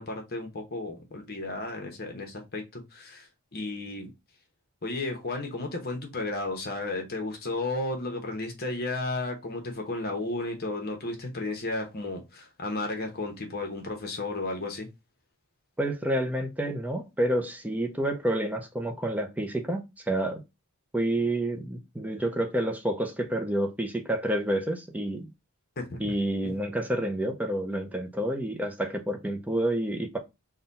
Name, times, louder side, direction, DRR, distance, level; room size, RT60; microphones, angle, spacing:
voice 1, 0.0-4.1 4.8-14.9 25.8-26.1 26.4-26.6, left 2 dB, 45° left, 0.9 m, -33 dB
voice 2, 15.8-20.4 20.9-25.3 26.0-30.2, right 1 dB, 5° right, 0.5 m, -29 dB
3.9 x 2.2 x 4.0 m
head